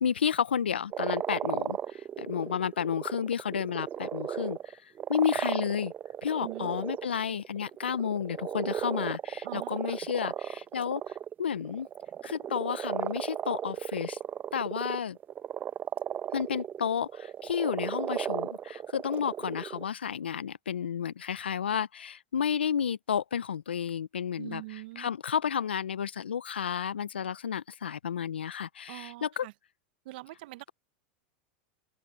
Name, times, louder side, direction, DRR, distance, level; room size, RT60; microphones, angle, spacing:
voice 1, 0.0-4.6 5.1-5.9 6.2-11.0 11.4-11.9 12.2-14.2 14.5-15.2 16.3-24.6 25.0-29.5, left 8 dB, 90° left, 0.6 m, -31 dB
sound 1, 0.9-19.9, right 9 dB, 30° right, 0.9 m, -35 dB
voice 2, 6.4-6.8 9.4-10.0 24.4-25.1 28.9-29.5 30.0-30.7, right 20 dB, 65° right, 1.2 m, -43 dB
open air
hypercardioid pair, 95°, 6 cm